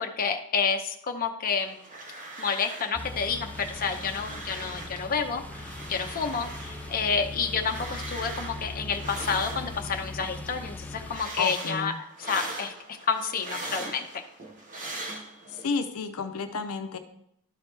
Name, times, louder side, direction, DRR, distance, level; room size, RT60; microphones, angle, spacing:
voice 1, 0.0-1.8 2.4-14.2, left 5 dB, 40° left, 4 dB, 0.7 m, -29 dB
sound 1, 1.6-3.0 3.2-5.0 5.4-10.1 10.5-15.6, right 2 dB, 40° right, 1.3 m, -41 dB
sound 2, 2.9-11.2, left 2 dB, 5° left, 0.4 m, -40 dB
voice 2, 11.4-12.0 15.5-17.0, left 5 dB, 80° left, 8 dB, 0.6 m, -31 dB
12.0 x 4.7 x 3.3 m, 0.74 s
head